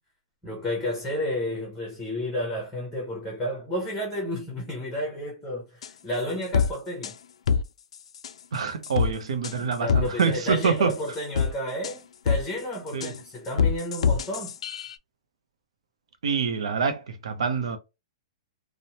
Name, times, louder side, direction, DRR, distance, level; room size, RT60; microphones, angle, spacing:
voice 1, 0.4-7.1 9.6-14.5, left 1 dB, 5° left, 0.6 m, -31 dB
sound 1, 5.8-5.9 6.5-6.7 7.0-7.1 7.5-7.6 7.9-8.3 8.8-9.1 9.4-9.5 9.9-10.3 10.6-11.5 11.8-11.9 12.3-12.4 12.9-13.2 13.6-14.9, left 6 dB, 85° left, 0.3 m, -24 dB
voice 2, 8.5-10.9 12.9-13.1 16.2-17.8, right 5 dB, 80° right, 0.7 m, -26 dB
3.0 x 2.0 x 2.8 m
hypercardioid pair, 175°, 3 cm